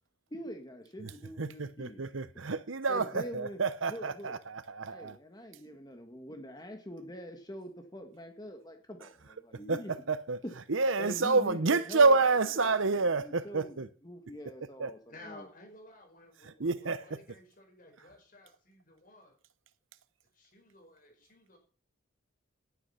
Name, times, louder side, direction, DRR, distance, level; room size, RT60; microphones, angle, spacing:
voice 1, 0.3-2.1 2.9-3.6 3.9-4.4 4.9-9.9 10.4-10.5 11.0-12.2 12.5-15.5, equal, 20° left, 1.8 m, -44 dB
voice 2, 1.4-5.1 9.7-9.8 10.1-10.4 10.7-13.9 14.8-14.9 16.6-17.0, right 3 dB, 80° right, 0.9 m, -28 dB
voice 3, 15.1-19.3 20.3-21.6, left 2 dB, 45° left, 5.0 m, -54 dB
18.0 x 9.2 x 5.7 m
head